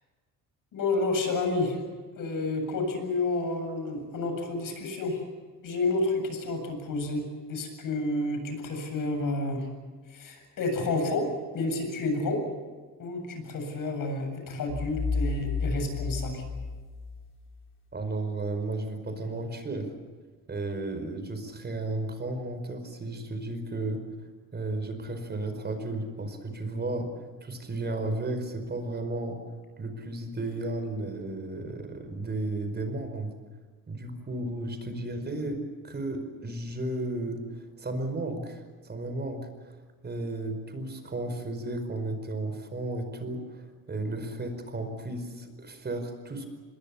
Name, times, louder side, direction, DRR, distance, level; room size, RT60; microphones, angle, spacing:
voice 1, 0.7-1.8 2.1-5.2 5.6-9.7 10.1-11.3 11.5-12.4 13.0-16.4, left 2 dB, 60° left, 5 dB, 7.6 m, -30 dB
sound 1, 14.7-17.6, left 3 dB, 35° left, 4.5 m, -31 dB
voice 2, 17.9-19.9 20.5-24.0 24.5-27.1 27.4-29.4 29.8-33.3 33.9-35.6 35.8-37.4 37.8-39.5 40.0-46.5, right 2 dB, 30° right, 8 dB, 5.0 m, -33 dB
26.5 x 21.5 x 7.2 m, 1.5 s
cardioid pair, 115°, 36 cm